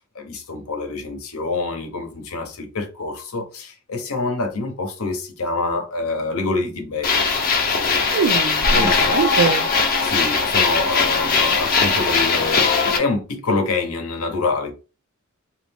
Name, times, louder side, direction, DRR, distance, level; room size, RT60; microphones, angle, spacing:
voice 1, 0.1-7.3 7.7-8.2 8.7-9.2 10.0-14.7, left 3 dB, 75° left, 0.8 m, -26 dB
sound 1, 7.0-13.0, left 4 dB, 40° left, 0.7 m, -19 dB
voice 2, 8.1-9.6, right 6 dB, 60° right, 0.3 m, -22 dB
2.9 x 2.4 x 3.5 m
head